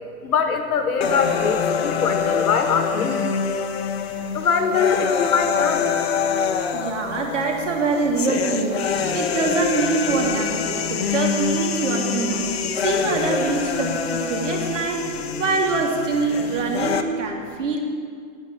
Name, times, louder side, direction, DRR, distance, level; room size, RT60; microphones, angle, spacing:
voice 1, 0.2-3.3 4.3-5.9, left 6 dB, 80° left, 5 dB, 1.5 m, -22 dB
sound 1, 1.0-17.0, left 6 dB, 45° left, 0.9 m, -25 dB
voice 2, 6.7-17.8, right 4 dB, 55° right, 1 dB, 2.8 m, -24 dB
9.7 x 9.4 x 9.9 m, 2.2 s
hypercardioid pair, 175°, 44 cm